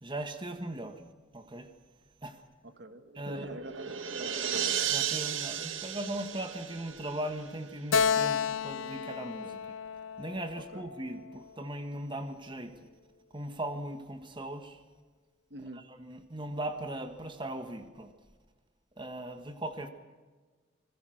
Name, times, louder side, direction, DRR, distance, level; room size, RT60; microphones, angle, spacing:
voice 1, 0.0-1.0 1.3-1.7 2.2-2.4 3.1-3.6 4.8-9.6 10.2-12.9 13.3-14.8 15.7-18.1 19.0-19.9, right 1 dB, 25° right, 7 dB, 1.6 m, -39 dB
voice 2, 2.6-5.0 9.4-9.5 10.5-10.9 15.5-15.8, right 1 dB, 55° right, 9 dB, 1.5 m, -46 dB
sound 1, 3.1-7.7, right 9 dB, 75° right, 1.7 m, -34 dB
Keyboard (musical), 7.9-11.4, left 6 dB, 85° left, 0.6 m, -31 dB
25.5 x 21.0 x 6.4 m, 1.4 s
head